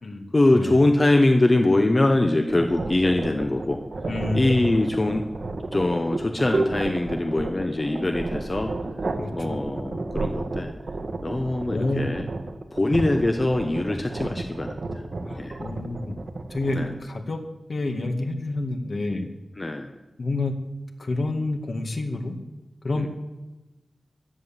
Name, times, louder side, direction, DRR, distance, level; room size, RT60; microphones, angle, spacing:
voice 1, 0.3-3.8 4.3-5.3 5.7-8.7 9.3-10.7 11.2-12.2 12.7-15.0 15.4-15.6 16.7-16.9 19.6-20.0 22.9-23.1, left 2 dB, 30° left, 5 dB, 1.2 m, -23 dB
sound 1, 2.5-17.0, right 2 dB, 60° right, 1.6 m, -32 dB
voice 2, 4.0-4.7 9.2-9.6 11.7-12.1 15.2-16.2 16.5-17.4 17.7-19.3 20.2-20.7 21.0-22.4 22.8-23.1, left 2 dB, 60° left, 4 dB, 2.2 m, -28 dB
16.0 x 11.0 x 7.6 m, 1.1 s
wide cardioid pair, 85°, 0 cm